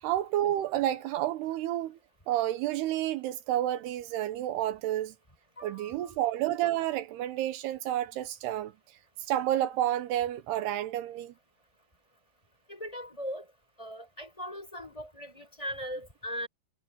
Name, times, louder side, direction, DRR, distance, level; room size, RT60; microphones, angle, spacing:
voice 1, 0.0-2.0 2.3-5.2 5.6-8.7 9.3-11.3, right 13 dB, 80° right, 3.0 m, -30 dB
voice 2, 5.6-6.1 12.7-13.4 13.8-16.5, equal, 5° left, 7.5 m, -39 dB
omnidirectional pair, 4.6 m